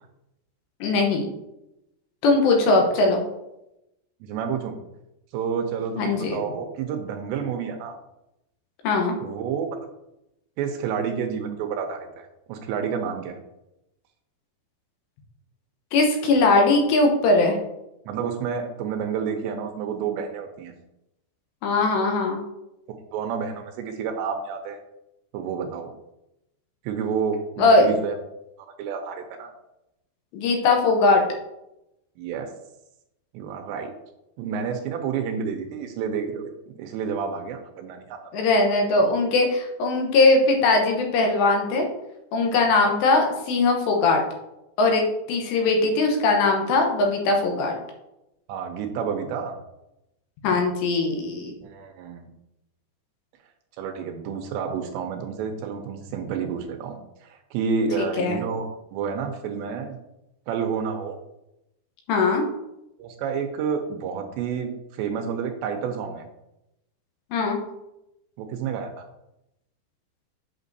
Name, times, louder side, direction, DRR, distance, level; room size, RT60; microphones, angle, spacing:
voice 1, 0.8-1.2 2.2-3.2 6.0-6.4 8.8-9.2 15.9-17.6 21.6-22.4 27.6-27.9 30.3-31.2 38.3-41.9 42.3-44.2 44.8-47.8 50.4-51.5 58.2-58.4 62.1-62.5 67.3-67.6, left 3 dB, 75° left, 2 dB, 3.0 m, -20 dB
voice 2, 4.2-4.8 5.3-7.9 9.2-9.8 10.6-13.4 18.1-20.7 22.9-24.8 25.3-25.9 26.8-28.2 28.8-29.5 32.2-32.5 33.3-33.9 34.4-36.5 36.8-38.2 48.5-49.6 51.6-52.3 53.8-60.0 60.5-61.2 63.0-66.3 68.4-69.0, right 6 dB, 80° right, 5 dB, 2.7 m, -29 dB
8.2 x 6.1 x 2.7 m, 0.88 s
omnidirectional pair, 5.3 m